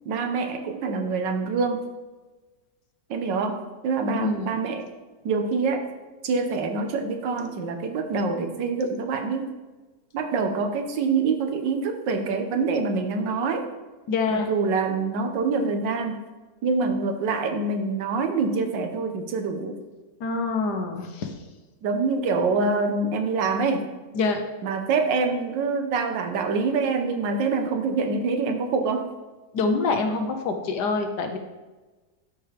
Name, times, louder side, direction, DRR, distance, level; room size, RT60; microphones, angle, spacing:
voice 1, 0.0-1.9 3.1-4.9 5.2-5.9 6.2-9.5 10.1-13.6 14.3-16.2 16.6-19.8 21.8-23.9 24.6-29.1, right 4 dB, 85° right, 5 dB, 1.5 m, -25 dB
voice 2, 4.1-4.6 14.1-14.5 20.2-21.4 24.1-24.4 29.5-31.4, left 3 dB, 70° left, 5 dB, 1.4 m, -26 dB
12.0 x 4.9 x 3.3 m, 1.3 s
omnidirectional pair, 1.9 m